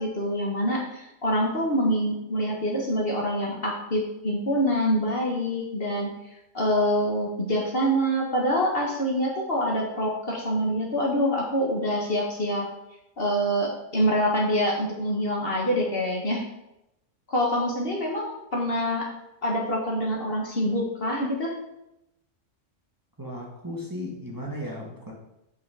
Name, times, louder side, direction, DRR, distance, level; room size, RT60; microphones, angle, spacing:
voice 1, 0.0-6.1 6.5-12.7 13.2-16.4 17.3-19.1 19.4-21.5, equal, 50° left, -1 dB, 1.8 m, -25 dB
voice 2, 23.2-25.1, left 1 dB, 15° right, -3 dB, 1.6 m, -35 dB
8.5 x 5.8 x 4.9 m, 0.87 s
omnidirectional pair, 1.3 m